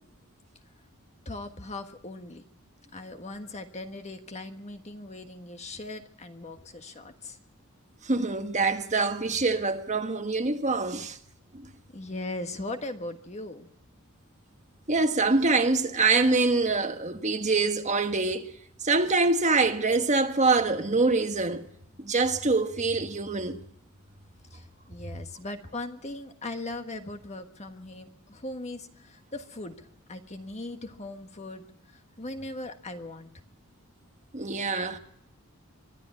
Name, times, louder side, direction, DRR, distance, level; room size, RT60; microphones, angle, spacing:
voice 1, 1.2-2.4 2.9-7.4 11.9-13.7 24.5-31.6 31.9-33.3, left 2 dB, 30° left, 1.5 m, -39 dB
voice 2, 8.0-11.2 11.5-11.7 14.9-18.5 18.8-21.7 22.0-23.6 34.3-35.0, right 3 dB, 35° right, 1.4 m, -25 dB
24.0 x 11.5 x 9.6 m
head